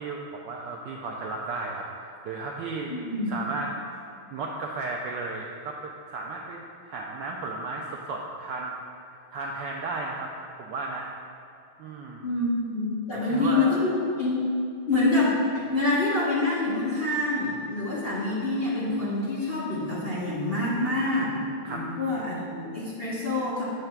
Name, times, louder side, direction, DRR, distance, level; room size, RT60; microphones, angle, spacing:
voice 1, 0.0-2.9 3.3-4.0 4.3-5.8 6.1-6.6 6.8-8.7 9.3-10.3 10.6-11.1 11.8-12.3 13.1-13.8 21.6-21.8, right 3 dB, 75° right, -1 dB, 1.0 m, -34 dB
voice 2, 2.8-3.3 12.2-14.4 14.9-15.4 15.7-21.3 21.7-23.6, left 2 dB, 40° left, -8 dB, 0.9 m, -26 dB
7.9 x 3.3 x 5.9 m, 2.6 s
omnidirectional pair, 2.4 m